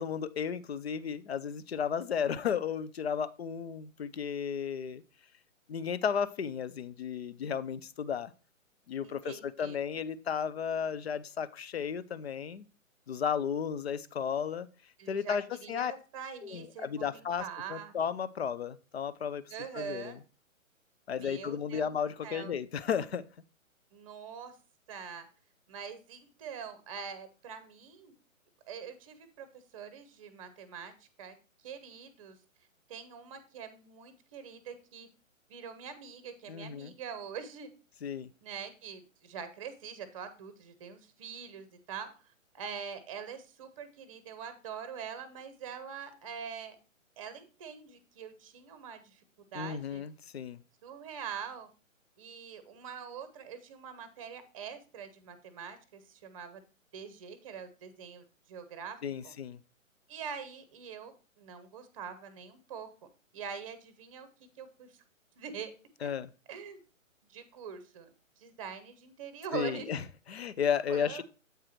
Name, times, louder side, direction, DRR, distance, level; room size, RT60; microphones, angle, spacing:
voice 1, 0.0-5.0 5.7-8.3 8.9-12.6 13.1-14.7 15.1-15.9 16.4-20.2 21.1-23.2 36.5-36.9 38.0-38.3 49.5-50.6 59.0-59.6 66.0-66.3 69.5-71.2, left 7 dB, 50° left, 16 dB, 0.5 m, -34 dB
voice 2, 9.0-9.8 15.0-18.0 19.5-20.2 21.1-21.9 22.2-22.5 23.9-24.5 24.9-25.3 25.7-28.1 28.6-31.4 31.6-32.4 32.9-35.1 35.5-37.7 38.4-42.1 42.5-46.8 47.2-49.2 49.5-50.0 50.8-51.7 52.2-56.6 56.9-58.2 58.5-59.0 59.2-59.3 60.1-62.9 63.3-64.3 64.6-65.0 65.4-65.7 66.0-66.1 66.5-66.8 67.3-69.9 70.9-71.2, right 7 dB, 25° right, 12 dB, 0.8 m, -44 dB
7.9 x 4.7 x 4.3 m, 0.34 s
figure-of-eight pair, 130°, 40 cm